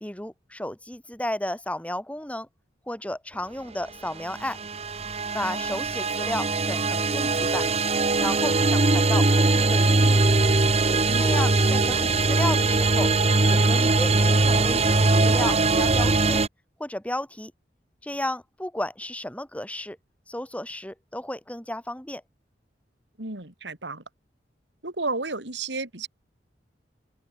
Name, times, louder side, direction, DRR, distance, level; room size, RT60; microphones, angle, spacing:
voice 1, 0.0-2.5 2.9-4.6 5.3-7.7 8.2-10.3 11.1-13.1 13.5-16.4 16.8-17.5 18.0-20.0 20.3-22.2, left 1 dB, 10° left, 2.5 m, -33 dB
sound 1, 4.2-16.5, right 3 dB, 35° right, 1.4 m, -21 dB
voice 2, 11.1-11.4 11.9-12.0 23.2-24.0 24.8-26.1, right 3 dB, 90° right, 4.0 m, -32 dB
open air
head